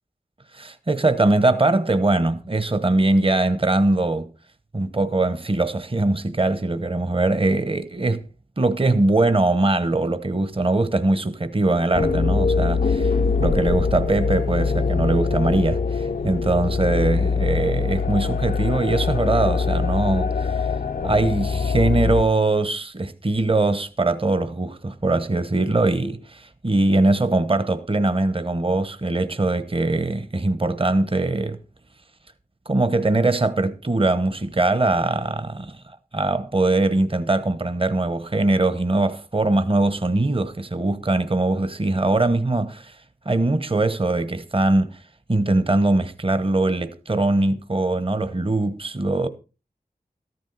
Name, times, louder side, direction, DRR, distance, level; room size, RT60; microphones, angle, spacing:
voice 1, 0.5-4.3 4.7-8.2 8.6-13.1 13.4-20.7 21.0-31.6 32.7-35.8 36.1-42.9 43.2-45.0 45.3-49.3, right 2 dB, 35° right, 1.1 m, -21 dB
sound 1, 11.9-22.2, left 4 dB, 60° left, 0.8 m, -23 dB
13.5 x 11.0 x 4.1 m
cardioid pair, 45°, 16 cm